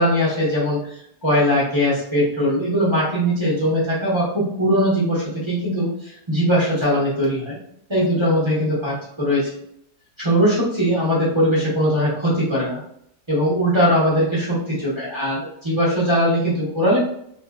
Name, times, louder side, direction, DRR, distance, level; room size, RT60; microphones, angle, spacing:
voice 1, 0.0-7.6 7.9-9.5 10.2-12.8 13.3-17.0, equal, 25° right, -7 dB, 0.7 m, -20 dB
2.7 x 2.6 x 2.3 m, 0.70 s
omnidirectional pair, 1.7 m